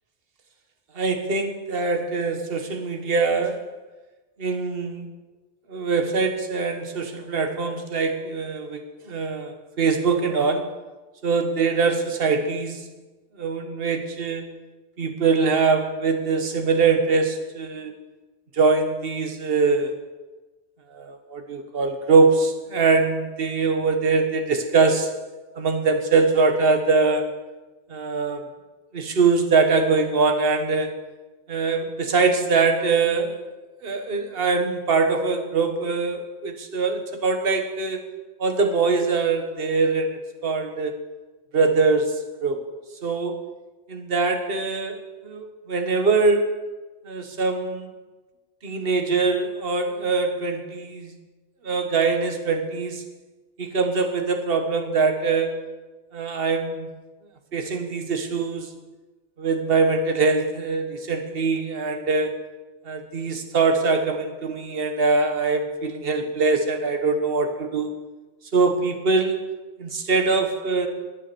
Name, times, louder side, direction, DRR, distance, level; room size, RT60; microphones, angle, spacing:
voice 1, 0.9-3.7 4.4-5.1 5.7-10.7 11.2-12.8 13.4-14.5 15.0-17.9 18.5-19.9 20.9-25.2 25.6-27.3 27.9-28.5 28.9-31.0 31.5-33.5 33.8-38.0 38.4-40.9 41.5-42.6 43.0-43.4 43.9-46.5 47.0-47.9 48.6-51.1 51.6-53.0 53.6-55.6 56.1-56.9 57.5-58.7 59.4-62.4 62.8-67.9 68.5-69.5 69.8-70.9, right 4 dB, 55° right, 6 dB, 1.6 m, -23 dB
20.5 x 7.4 x 6.8 m, 1.2 s
omnidirectional pair, 1.2 m